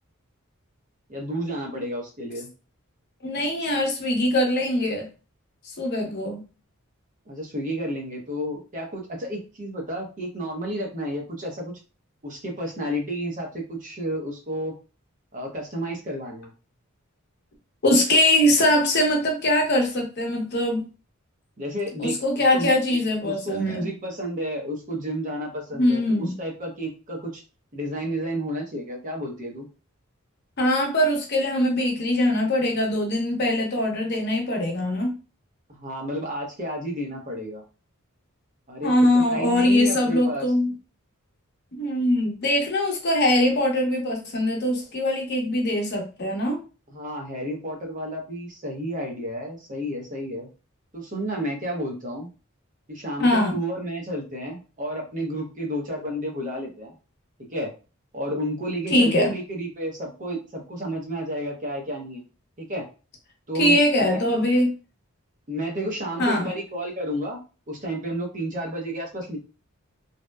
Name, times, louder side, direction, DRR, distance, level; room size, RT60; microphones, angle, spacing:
voice 1, 1.1-2.5 7.3-11.7 12.2-14.7 15.3-16.5 21.6-27.4 27.7-29.7 35.7-37.6 38.7-40.5 46.9-50.5 50.9-52.3 52.9-56.9 57.4-57.7 58.1-62.2 62.6-62.8 63.5-64.2 65.5-67.4 67.7-69.4, equal, 40° right, 1 dB, 0.7 m, -31 dB
voice 2, 3.2-5.1 5.8-6.4 17.8-20.8 22.0-23.9 25.7-26.3 30.6-35.1 38.8-40.7 41.7-46.6 53.2-53.6 58.9-59.3 63.5-64.7 66.2-66.5, left 1 dB, 50° left, 1 dB, 0.7 m, -22 dB
2.7 x 2.1 x 2.2 m, 0.34 s
head